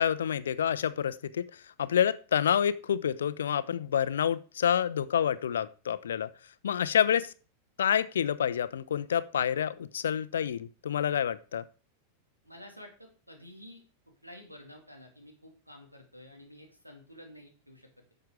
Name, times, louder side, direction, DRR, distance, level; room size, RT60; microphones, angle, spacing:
voice 1, 0.0-6.3 6.6-7.3 7.8-11.6, left 9 dB, 65° left, 16 dB, 0.6 m, -28 dB
voice 2, 12.4-13.8 14.2-18.1, left 1 dB, 90° right, 3 dB, 2.7 m, -51 dB
10.5 x 6.8 x 4.8 m, 0.37 s
figure-of-eight pair, 90°, 0 cm